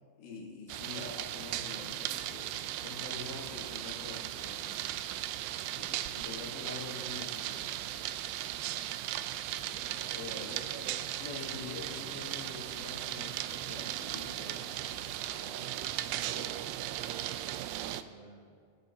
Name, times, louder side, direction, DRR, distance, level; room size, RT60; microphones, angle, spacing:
voice 1, 0.2-5.0 5.7-7.7 9.5-9.9 10.2-10.6 11.2-17.0, left 4 dB, 85° left, -2 dB, 4.7 m, -46 dB
sound 1, 0.7-18.0, right 13 dB, 85° right, 2.8 m, -37 dB
voice 2, 9.8-11.1 11.7-12.1 17.9-18.6, right 3 dB, 60° right, -1 dB, 3.1 m, -50 dB
26.0 x 14.5 x 2.8 m, 2.2 s
omnidirectional pair, 4.9 m